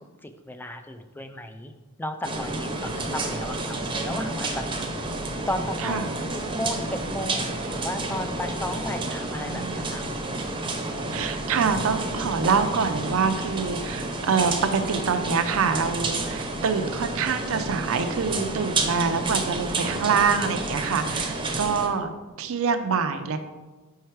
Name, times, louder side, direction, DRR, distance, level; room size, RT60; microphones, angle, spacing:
voice 1, 0.2-1.7 2.0-4.6 5.5-6.1 6.5-10.0 10.5-11.1, left 1 dB, 10° left, 7 dB, 0.4 m, -34 dB
sound 1, 2.2-21.9, right 2 dB, 20° right, 0.7 m, -30 dB
voice 2, 2.8-3.1 5.8-6.1 9.0-9.9 11.1-22.1 22.4-23.4, right 5 dB, 65° right, 9 dB, 0.5 m, -26 dB
5.5 x 4.7 x 4.5 m, 1.2 s
head